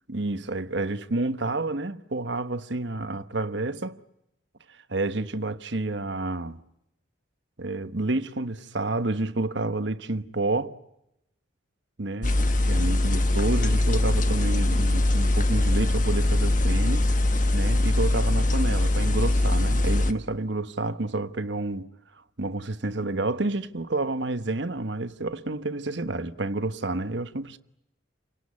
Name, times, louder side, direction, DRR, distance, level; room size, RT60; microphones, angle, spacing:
voice 1, 0.1-4.0 4.9-6.6 7.6-10.8 12.0-12.4 12.7-17.1 17.5-21.9 22.4-27.6, right 2 dB, 65° right, 1.2 m, -29 dB
sound 1, 12.2-20.1, left 1 dB, 40° left, 1.4 m, -22 dB
30.0 x 18.0 x 9.8 m
head